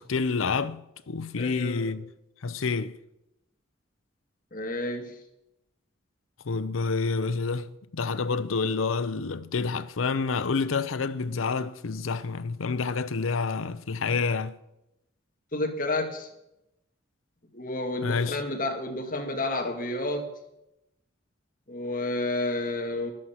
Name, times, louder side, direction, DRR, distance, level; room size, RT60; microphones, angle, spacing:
voice 1, 0.0-2.1 2.4-3.0 6.4-14.6 18.0-18.4, left 4 dB, 90° left, 0.6 m, -28 dB
voice 2, 1.4-1.9 4.5-5.2 15.5-16.3 17.5-20.3 21.7-23.1, left 2 dB, 45° left, 1.9 m, -30 dB
14.0 x 11.0 x 5.8 m
head